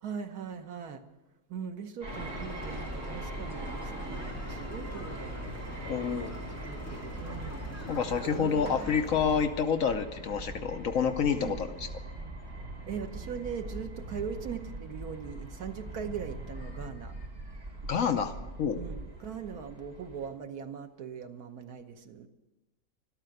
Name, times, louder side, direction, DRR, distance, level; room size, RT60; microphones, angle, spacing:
voice 1, 0.0-1.0 1.5-6.0 6.5-7.6 8.3-8.9 11.3-11.6 12.9-17.1 18.8-22.3, right 7 dB, 85° right, 6 dB, 1.6 m, -40 dB
sound 1, 2.0-20.3, right 2 dB, 40° right, 4.5 m, -42 dB
sound 2, 2.1-9.5, left 1 dB, 10° left, 2.3 m, -41 dB
voice 2, 5.8-6.3 7.9-11.9 17.9-18.8, left 6 dB, 65° left, 8 dB, 1.2 m, -28 dB
13.0 x 13.0 x 7.8 m, 1.1 s
omnidirectional pair, 1.6 m